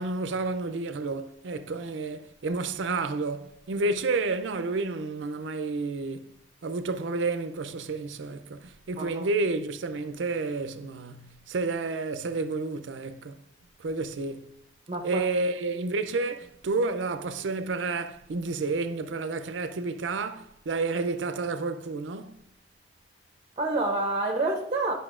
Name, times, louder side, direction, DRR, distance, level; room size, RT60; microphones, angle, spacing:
voice 1, 0.0-6.3 6.6-13.4 13.8-14.5 15.0-22.4, right 3 dB, 80° right, 0.5 m, -30 dB
voice 2, 8.9-9.3 14.9-15.2 23.6-24.9, right 2 dB, 30° right, 0.7 m, -28 dB
11.0 x 5.5 x 2.4 m
head